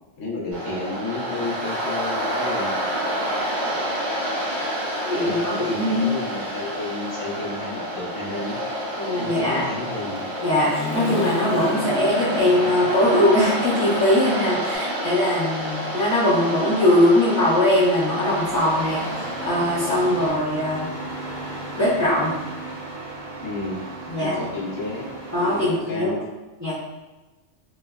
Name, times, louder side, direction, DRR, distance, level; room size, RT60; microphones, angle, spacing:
voice 1, 0.2-2.7 5.2-8.6 9.2-10.3 23.4-23.8 24.2-26.2, left 2 dB, 30° left, -6 dB, 0.4 m, -31 dB
Waves surf, 0.5-20.3, equal, 55° right, 1.2 m, -29 dB
Human voice / Motorcycle, 3.5-3.6 4.0-5.8 6.2-14.8, left 3 dB, 70° left, 0.8 m, -37 dB
voice 2, 5.0-5.4 5.7-6.1 9.0-9.6 10.4-20.9 21.8-22.3 24.1-24.4 25.3-26.2 26.6-26.7, left 1 dB, 15° right, -12 dB, 0.6 m, -21 dB
Engine starting, 17.7-25.8, right 2 dB, 85° right, 1.3 m, -35 dB
3.2 x 2.1 x 2.3 m, 1.2 s
omnidirectional pair, 1.3 m